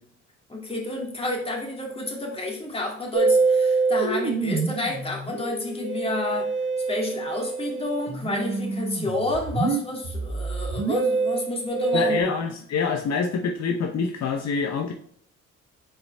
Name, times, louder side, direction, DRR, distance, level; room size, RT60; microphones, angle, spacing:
voice 1, 0.5-6.5 6.9-12.3, left 2 dB, 20° left, -1 dB, 2.4 m, -30 dB
Musical instrument, 3.1-12.2, right 4 dB, 40° right, 1.1 m, -26 dB
voice 2, 11.9-14.9, left 5 dB, 60° left, 3 dB, 0.8 m, -26 dB
6.8 x 4.4 x 3.4 m, 0.64 s
cardioid pair, 90°, 30 cm